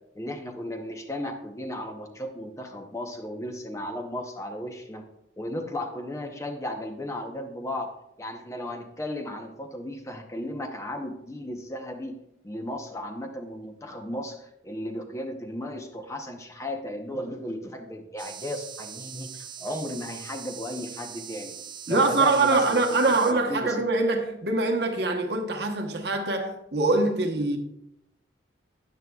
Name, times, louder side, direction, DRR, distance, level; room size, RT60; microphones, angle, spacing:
voice 1, 0.1-5.0 5.4-7.9 8.2-12.1 12.4-21.6 21.9-23.8, left 1 dB, 15° left, 0.8 m, -35 dB
sound 1, 18.2-23.3, right 7 dB, 25° right, 0.6 m, -41 dB
voice 2, 21.9-27.6, right 3 dB, 60° right, 1.0 m, -24 dB
12.5 x 9.3 x 2.3 m
head